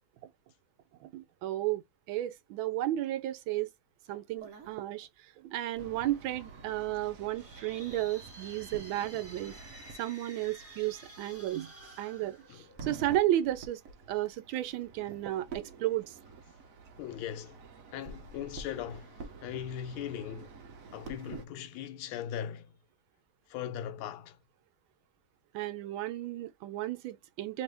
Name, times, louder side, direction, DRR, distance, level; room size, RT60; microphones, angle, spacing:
voice 1, 1.0-1.8 2.1-3.7 4.1-5.1 5.5-9.5 10.0-11.7 12.0-13.8 14.1-16.0 25.5-27.6, right 14 dB, 80° right, 1.3 m, -33 dB
sound 1, 4.4-4.7 5.8-21.5, right 4 dB, 65° right, 0.8 m, -49 dB
sound 2, 7.1-13.1, right 1 dB, 15° right, 0.6 m, -52 dB
voice 2, 17.0-17.6 17.9-20.6 20.9-22.7 23.5-24.4, left 10 dB, 90° left, 1.5 m, -39 dB
3.2 x 2.6 x 3.3 m
omnidirectional pair, 2.2 m